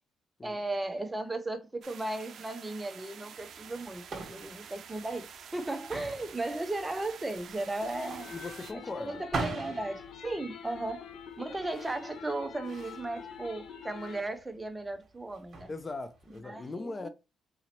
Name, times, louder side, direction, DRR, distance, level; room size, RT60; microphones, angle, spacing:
voice 1, 0.4-5.3 5.5-8.3 9.0-11.1 11.4-15.7 16.4-17.1, right 2 dB, 15° right, 0.7 m, -36 dB
sound 1, 1.8-8.7, right 7 dB, 60° right, 0.6 m, -49 dB
sound 2, 3.4-16.4, right 3 dB, 45° right, 1.5 m, -43 dB
sound 3, 7.8-14.2, left 7 dB, 70° left, 0.6 m, -46 dB
voice 2, 8.3-9.2 15.7-17.1, left 3 dB, 25° left, 0.5 m, -39 dB
3.9 x 2.8 x 2.9 m
cardioid pair, 90°, 0 cm